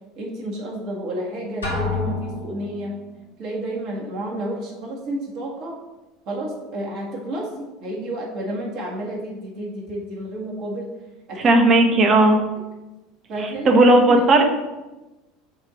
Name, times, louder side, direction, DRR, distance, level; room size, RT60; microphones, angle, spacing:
voice 1, 0.2-2.9 3.4-5.8 6.2-10.9 11.3-11.6 12.0-12.2 13.3-13.7 14.1-14.4, right 1 dB, 55° right, -1 dB, 1.6 m, -30 dB
Drum, 1.6-2.8, left 4 dB, 85° left, 1.5 m, -28 dB
voice 2, 11.4-12.4 13.4-14.4, right 2 dB, 35° right, 4 dB, 1.0 m, -15 dB
7.1 x 2.8 x 5.0 m, 1.1 s
figure-of-eight pair, 70°, 0 cm